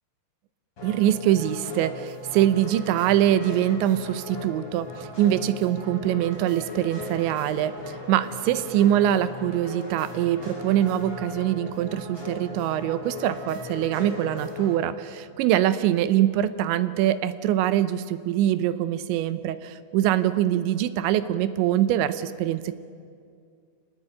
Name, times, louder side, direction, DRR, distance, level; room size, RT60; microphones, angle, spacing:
sound 1, 0.8-14.8, left 2 dB, 25° left, 8.5 m, -38 dB
voice 1, 0.8-22.8, right 12 dB, 80° right, 13 dB, 3.0 m, -24 dB
26.5 x 19.5 x 8.8 m, 2.2 s
omnidirectional pair, 5.5 m